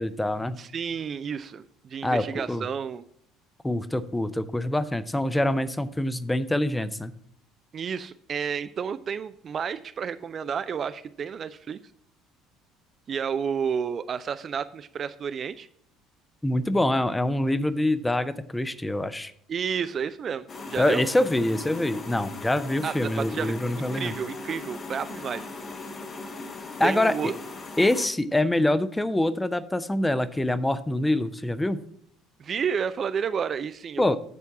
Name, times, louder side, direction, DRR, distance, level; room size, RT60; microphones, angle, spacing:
voice 1, 0.0-0.6 2.0-2.6 3.6-7.1 16.4-19.3 20.8-24.1 26.8-27.3 27.8-31.8 34.0-34.2, left 1 dB, 10° left, 13 dB, 0.6 m, -25 dB
voice 2, 0.6-3.0 7.7-11.8 13.1-15.7 19.5-21.1 22.8-25.5 26.8-27.3 32.4-34.2, right 7 dB, 35° right, 13 dB, 0.3 m, -31 dB
sound 1, 20.5-28.1, left 3 dB, 35° left, 1.0 m, -39 dB
8.3 x 4.5 x 7.1 m, 0.67 s
figure-of-eight pair, 60°, 0 cm